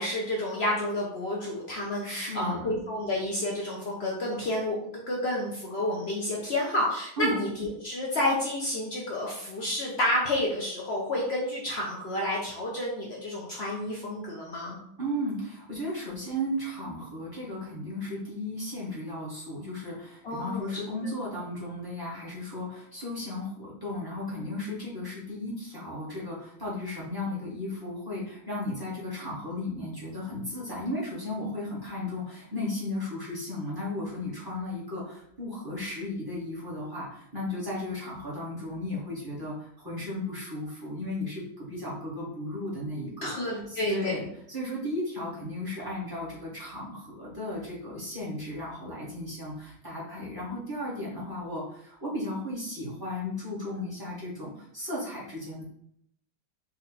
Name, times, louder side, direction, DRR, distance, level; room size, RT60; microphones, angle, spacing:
voice 1, 0.0-14.8 20.2-20.8 43.2-44.2, left 1 dB, 90° left, -2 dB, 0.5 m, -30 dB
voice 2, 2.0-2.6 7.2-7.3 15.0-44.2 44.5-55.6, left 1 dB, 10° right, -7 dB, 1.6 m, -35 dB
4.5 x 2.9 x 3.9 m, 0.71 s
omnidirectional pair, 2.2 m